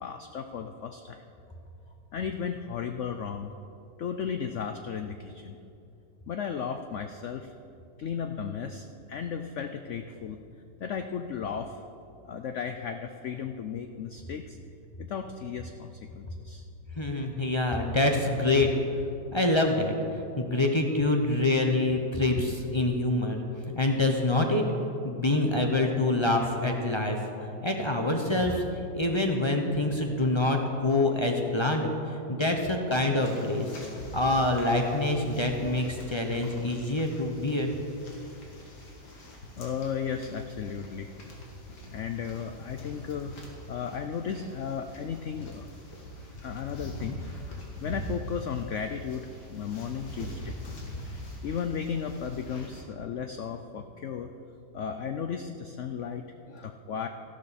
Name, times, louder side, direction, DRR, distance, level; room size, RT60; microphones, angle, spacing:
voice 1, 0.0-1.2 2.1-3.5 4.0-5.6 6.3-7.5 8.0-10.4 10.8-11.8 12.3-14.6 15.0-16.6 26.3-26.5 39.6-41.1 41.9-43.3 43.7-45.7 46.4-47.2 47.8-49.2 49.5-50.7 51.4-54.3 54.7-57.1, left 7 dB, 85° left, 7 dB, 0.6 m, -35 dB
voice 2, 17.0-18.7 19.3-23.4 23.7-24.6 25.0-27.3 27.6-28.6 28.9-33.7 34.1-37.7, left 2 dB, 30° left, 2 dB, 0.5 m, -26 dB
sound 1, 33.2-52.8, equal, 65° left, 2.4 m, -43 dB
14.0 x 12.5 x 4.2 m, 2.7 s
omnidirectional pair, 1.9 m